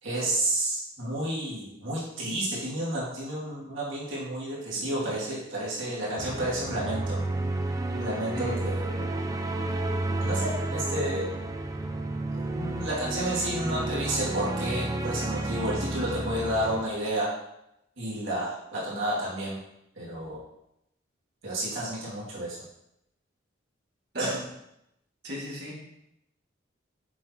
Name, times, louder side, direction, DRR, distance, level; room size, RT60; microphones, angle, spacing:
voice 1, 0.0-7.2 7.9-9.1 10.2-11.3 12.5-17.3 18.0-19.6 20.0-20.4 21.4-22.6 24.2-24.3, right 1 dB, 85° right, -7 dB, 2.4 m, -31 dB
sound 1, 6.2-16.8, right 2 dB, 15° right, 0.4 m, -31 dB
voice 2, 25.2-25.9, equal, 55° right, -4 dB, 2.2 m, -36 dB
7.4 x 5.9 x 3.0 m, 0.81 s
head